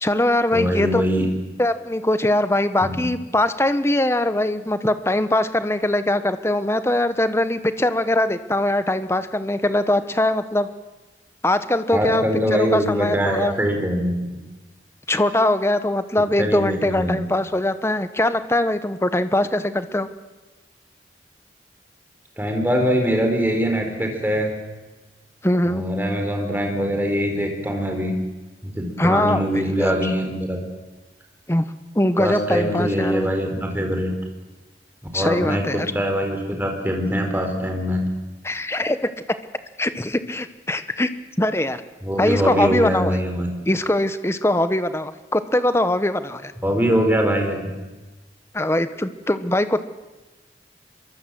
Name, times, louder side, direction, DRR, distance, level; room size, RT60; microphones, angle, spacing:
voice 1, 0.0-1.0 1.6-10.7 11.4-12.2 12.5-13.5 15.1-20.1 25.4-25.8 29.0-30.1 31.5-31.6 31.9-33.3 35.1-35.9 38.4-39.1 39.8-41.1 41.4-41.8 42.2-43.2 43.6-46.5 48.5-49.9, left 1 dB, 15° left, 11 dB, 1.1 m, -22 dB
voice 2, 0.5-1.2 2.8-3.1 11.9-14.2 16.4-17.2 22.4-24.5 25.7-28.1 28.6-30.6 32.2-34.1 35.1-35.6 35.9-38.0 42.0-43.5 46.6-47.7, equal, 10° right, 3 dB, 4.4 m, -22 dB
24.5 x 22.5 x 7.8 m, 1.2 s
head